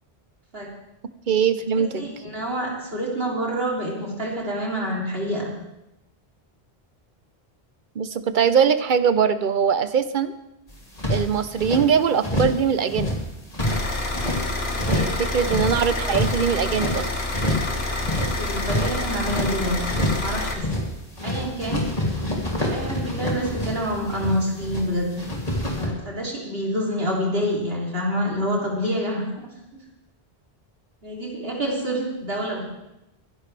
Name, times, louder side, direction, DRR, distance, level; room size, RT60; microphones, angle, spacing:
voice 1, 1.3-2.0 8.0-10.3 11.1-13.1 14.9-17.1, right 7 dB, 55° right, 11 dB, 0.9 m, -21 dB
voice 2, 2.0-5.5 14.6-15.1 16.0-16.2 18.0-19.9 20.2-20.7 21.2-21.8 22.7-25.2 25.8-29.5 31.0-32.6, equal, 70° right, -3 dB, 3.5 m, -27 dB
sound 1, 10.7-11.8 12.2-12.6 12.9-14.4 14.8-15.2 15.4-17.0 17.3-17.7 18.0-19.5 19.9-20.3 20.5-20.9 21.2-24.8 25.1-25.9, left 1 dB, 35° left, 3.0 m, -27 dB
sound 2, 13.6-20.5, left 2 dB, 90° left, 1.9 m, -28 dB
22.5 x 11.0 x 3.4 m, 0.91 s
omnidirectional pair, 1.0 m